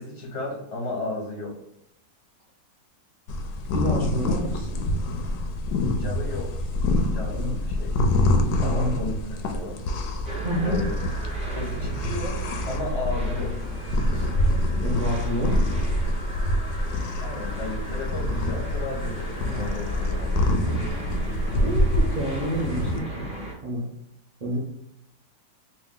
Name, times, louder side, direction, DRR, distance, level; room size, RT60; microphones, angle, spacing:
voice 1, 0.0-1.5 5.9-6.5 7.1-7.9 8.6-9.8 10.6-11.0 11.5-12.4 12.7-13.5 17.2-20.8, left 2 dB, 50° left, -2 dB, 0.8 m, -34 dB
sound 1, 3.3-23.0, left 1 dB, 70° left, 1.0 m, -26 dB
voice 2, 3.7-4.9 7.3-7.5 8.6-9.0 10.4-10.8 14.1-14.3 14.8-15.6 21.5-23.3 23.6-23.9 24.4-24.6, equal, 80° right, -7 dB, 0.3 m, -28 dB
sound 2, 10.2-23.5, right 3 dB, 5° right, 0.6 m, -36 dB
3.1 x 2.5 x 3.6 m, 0.79 s
omnidirectional pair, 1.9 m